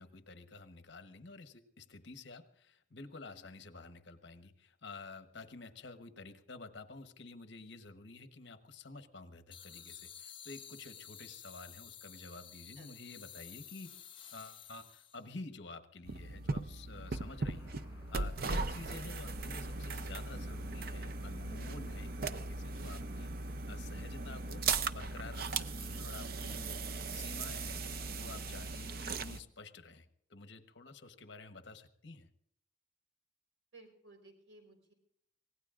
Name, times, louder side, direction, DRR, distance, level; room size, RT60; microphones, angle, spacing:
voice 1, 0.0-17.7 18.1-26.8 27.1-27.8 28.1-32.3, left 3 dB, 60° left, 9 dB, 1.1 m, -50 dB
sound 1, 9.5-15.3, left 9 dB, 25° left, 0.9 m, -52 dB
sound 2, 16.0-29.4, right 3 dB, 50° right, 0.6 m, -38 dB
sound 3, 17.0-23.3, equal, 15° right, 6.7 m, -57 dB
voice 2, 33.7-34.9, right 2 dB, 85° right, 2 dB, 4.2 m, -58 dB
24.5 x 18.0 x 2.5 m, 0.73 s
head